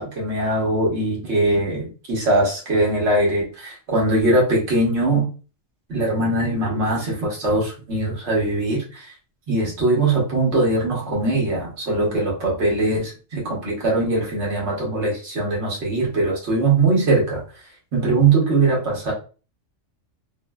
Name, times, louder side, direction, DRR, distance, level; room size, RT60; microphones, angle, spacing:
voice 1, 0.0-5.3 5.9-9.1 9.5-17.4 17.9-19.1, right 2 dB, 65° right, 1.3 m, -21 dB
3.0 x 2.1 x 2.2 m
omnidirectional pair, 1.3 m